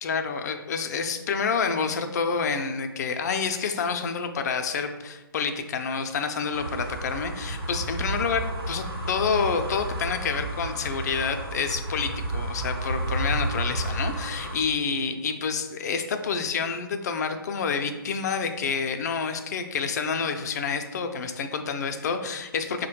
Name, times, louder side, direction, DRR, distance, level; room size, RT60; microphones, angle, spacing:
voice 1, 0.0-22.9, left 5 dB, 45° left, 7 dB, 0.4 m, -28 dB
sound 1, 6.5-14.6, right 1 dB, 75° right, 0.7 m, -31 dB
4.6 x 2.1 x 2.9 m, 1.1 s
figure-of-eight pair, 135°, 13 cm